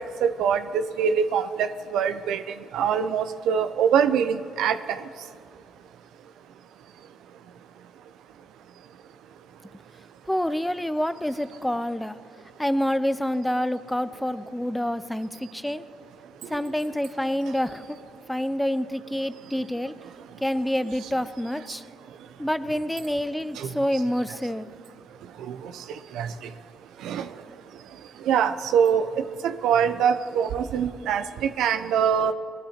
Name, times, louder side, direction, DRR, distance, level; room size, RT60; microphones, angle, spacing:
voice 1, 0.0-2.4 2.7-5.0 23.6-23.7 25.5-25.6 26.1-26.3 27.0-27.3 28.3-32.3, right 7 dB, 85° right, 10 dB, 0.6 m, -24 dB
voice 2, 10.3-12.1 12.6-15.8 16.5-17.8 18.3-19.9 20.4-21.8 22.4-24.7, equal, 5° left, 14 dB, 0.5 m, -27 dB
19.0 x 11.5 x 4.3 m, 2.2 s
cardioid pair, 75°, 0 cm